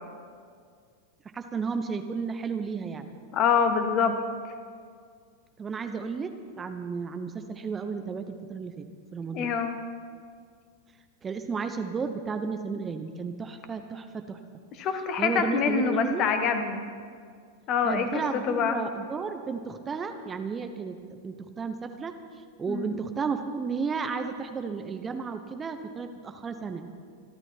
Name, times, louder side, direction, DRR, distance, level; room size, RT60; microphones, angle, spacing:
voice 1, 1.3-3.1 5.6-8.8 9.1-9.5 11.2-14.4 15.2-16.3 17.8-22.1 22.6-26.8, right 5 dB, 20° right, 7 dB, 1.0 m, -33 dB
voice 2, 3.3-4.2 9.3-9.8 14.8-16.9 17.7-18.8 22.7-22.9, left 6 dB, 35° left, 7 dB, 1.5 m, -25 dB
26.5 x 12.0 x 4.5 m, 2.1 s
figure-of-eight pair, 90°, 0 cm